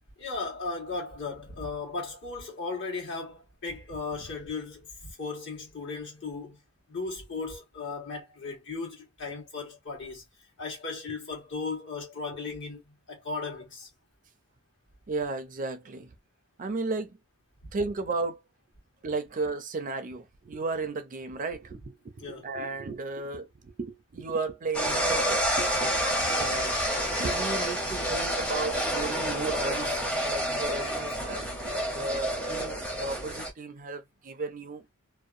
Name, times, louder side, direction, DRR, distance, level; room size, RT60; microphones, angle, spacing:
voice 1, 0.2-6.6 6.9-10.2 10.6-13.9 22.2-22.5 26.3-26.7 27.1-27.2 31.1-31.2, left 4 dB, 60° left, 1.3 m, -36 dB
voice 2, 15.1-16.1 16.6-17.2 17.7-18.4 19.0-26.0 26.3-26.7 27.2-34.9, right 3 dB, 40° right, 0.4 m, -34 dB
sound 1, 24.7-33.5, equal, 5° left, 0.6 m, -29 dB
2.7 x 2.1 x 2.4 m
head